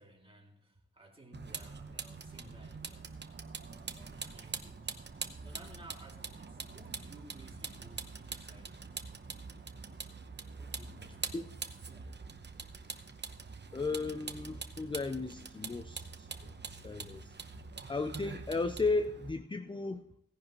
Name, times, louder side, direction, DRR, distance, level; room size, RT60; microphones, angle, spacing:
voice 1, 0.0-3.3 3.6-4.9 5.2-9.0 10.6-12.4, right 1 dB, 15° right, 0 dB, 2.4 m, -57 dB
Vehicle, 1.3-19.3, right 4 dB, 35° right, 0.9 m, -44 dB
voice 2, 13.7-16.3 16.7-17.3 17.9-20.0, left 3 dB, 15° left, 9 dB, 0.5 m, -35 dB
17.0 x 10.5 x 3.0 m, 0.74 s
wide cardioid pair, 110°, 32 cm